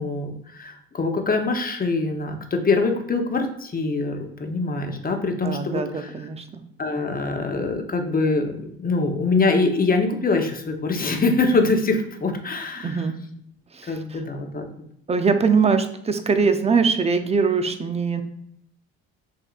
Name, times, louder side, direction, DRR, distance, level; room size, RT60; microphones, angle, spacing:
voice 1, 0.0-6.1 6.8-13.0 13.9-14.7, left 3 dB, 30° left, 4 dB, 0.8 m, -24 dB
voice 2, 5.4-6.6 12.8-13.1 13.7-14.2 15.1-18.2, right 5 dB, 20° right, 8 dB, 0.6 m, -22 dB
6.7 x 2.7 x 2.5 m, 0.71 s
supercardioid pair, 70°, 31 cm